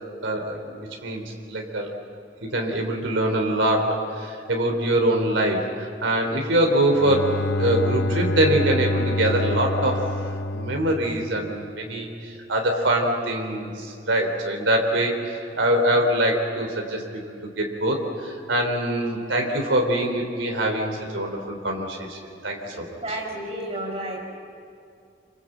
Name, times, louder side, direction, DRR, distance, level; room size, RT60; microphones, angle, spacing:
voice 1, 0.2-2.0 2.4-7.3 7.6-22.8, right 1 dB, 90° right, 2 dB, 3.5 m, -24 dB
Bowed string instrument, 6.7-11.7, left 1 dB, 70° left, 0.9 m, -27 dB
voice 2, 22.7-24.2, right 1 dB, 30° right, 0 dB, 6.1 m, -32 dB
26.5 x 26.5 x 8.0 m, 2.5 s
head